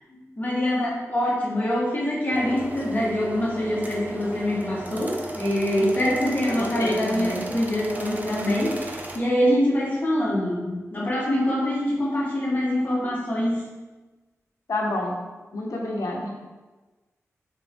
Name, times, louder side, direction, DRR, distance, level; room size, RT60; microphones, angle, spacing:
voice 1, 0.1-13.6, left 1 dB, 35° left, -4 dB, 0.9 m, -24 dB
sound 1, 2.3-9.2, right 2 dB, 30° right, 0.4 m, -36 dB
voice 2, 6.5-7.5 14.7-15.2 15.5-16.3, left 1 dB, 90° left, -1 dB, 0.7 m, -29 dB
3.7 x 2.6 x 3.3 m, 1.2 s
wide cardioid pair, 135°, 5 cm